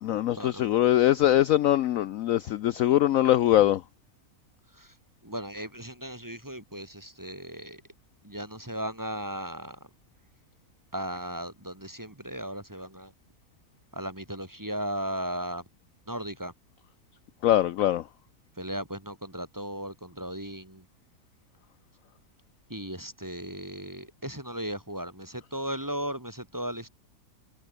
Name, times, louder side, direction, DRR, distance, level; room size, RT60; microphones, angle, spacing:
voice 1, 0.0-3.8 17.4-18.0, left 13 dB, 65° left, 0.9 m, -22 dB
voice 2, 5.2-7.8 8.2-9.8 10.9-13.1 13.9-15.6 16.1-16.5 18.6-20.8 22.7-26.9, equal, 10° right, 3.5 m, -36 dB
omnidirectional pair, 1.7 m